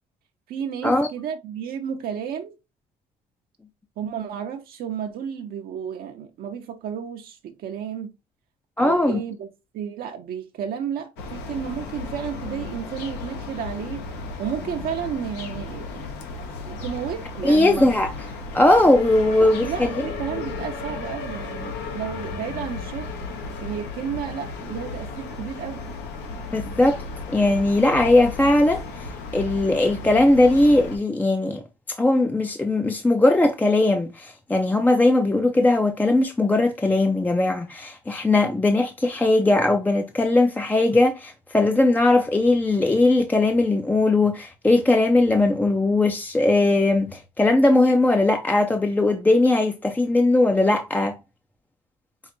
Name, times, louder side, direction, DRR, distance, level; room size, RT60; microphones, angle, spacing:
voice 1, 0.5-2.6 4.0-8.1 8.8-9.5 9.7-14.0 14.4-16.1 16.7-17.8 19.4-23.1 23.6-25.8, right 8 dB, 60° right, 0.6 m, -32 dB
voice 2, 8.8-9.2 17.4-18.1 18.5-20.0 26.5-27.0 27.3-31.6 31.9-51.2, left 2 dB, 10° left, 0.4 m, -19 dB
sound 1, 11.2-31.0, left 4 dB, 85° left, 1.0 m, -34 dB
5.5 x 2.5 x 2.8 m
cardioid pair, 110°, 17 cm